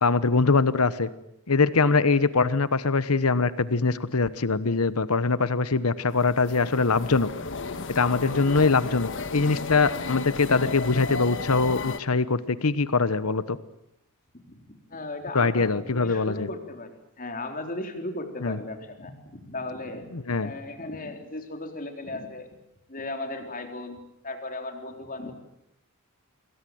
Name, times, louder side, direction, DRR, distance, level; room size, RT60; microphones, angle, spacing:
voice 1, 0.0-1.1 1.5-7.3 7.9-13.6 15.3-16.5 18.4-18.6 20.1-20.5, left 4 dB, 80° left, 15 dB, 1.1 m, -23 dB
sound 1, 6.1-12.0, left 4 dB, 60° left, 1.5 m, -33 dB
voice 2, 14.5-22.5 22.9-25.3, left 2 dB, 40° left, 5 dB, 4.0 m, -36 dB
27.5 x 22.5 x 7.9 m, 0.78 s
head